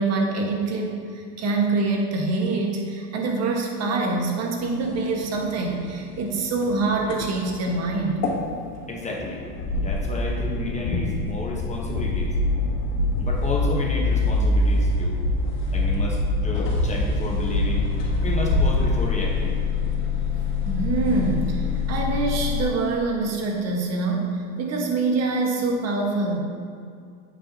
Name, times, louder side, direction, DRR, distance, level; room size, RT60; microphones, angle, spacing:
voice 1, 0.0-8.2 20.6-26.4, right 3 dB, 35° right, 1 dB, 1.5 m, -25 dB
sound 1, 4.6-22.6, left 2 dB, 75° left, 2.1 m, -25 dB
voice 2, 8.9-9.4 9.7-12.4 13.2-15.2 15.7-17.9 18.2-19.6, left 2 dB, 15° left, -1 dB, 1.1 m, -31 dB
8.6 x 8.5 x 2.8 m, 2.3 s
supercardioid pair, 125°, 46 cm